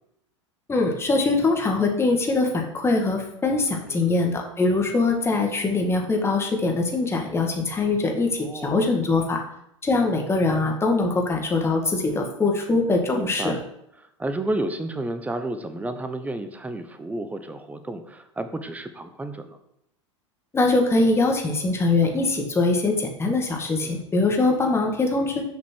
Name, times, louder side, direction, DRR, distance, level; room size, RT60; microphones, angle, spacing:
voice 1, 0.7-9.4 9.8-13.6 20.5-25.4, left 3 dB, 15° left, 2 dB, 1.7 m, -22 dB
voice 2, 8.4-8.8 13.1-13.6 14.0-19.6 23.8-24.0, right 2 dB, 10° right, 10 dB, 0.9 m, -31 dB
6.9 x 5.1 x 6.2 m, 0.79 s
hypercardioid pair, 100°, 16 cm